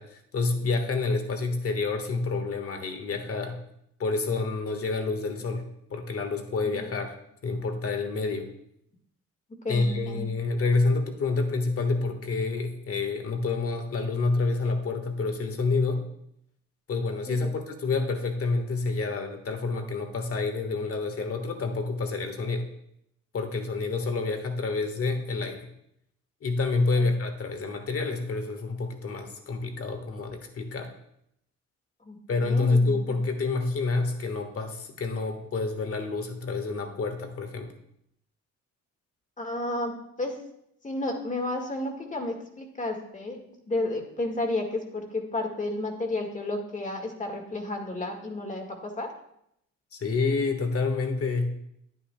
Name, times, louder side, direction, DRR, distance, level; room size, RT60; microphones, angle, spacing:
voice 1, 0.0-3.6 4.0-5.6 5.9-7.1 7.4-8.5 9.7-16.0 16.9-22.7 23.3-25.7 26.4-30.9 32.3-37.7 49.9-51.5, left 3 dB, 50° left, 6 dB, 1.4 m, -28 dB
voice 2, 6.6-6.9 9.6-10.3 17.3-17.5 27.0-27.1 32.0-33.2 39.4-40.4 40.8-49.1, left 2 dB, 25° left, 3 dB, 1.7 m, -32 dB
9.8 x 9.3 x 2.2 m, 0.75 s
cardioid pair, 90°, 30 cm